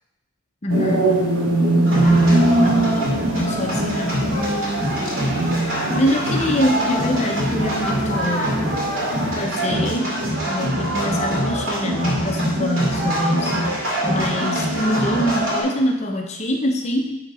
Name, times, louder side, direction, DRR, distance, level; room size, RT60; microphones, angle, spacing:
voice 1, 0.6-1.1 1.9-4.2 6.0-8.6 9.3-10.2 10.5-17.2, equal, 30° left, 2 dB, 0.7 m, -24 dB
sound 1, 0.7-9.4, right 1 dB, 85° right, 1.2 m, -22 dB
sound 2, 1.8-15.6, equal, 65° right, 2.3 m, -24 dB
10.0 x 3.6 x 4.2 m, 0.99 s
head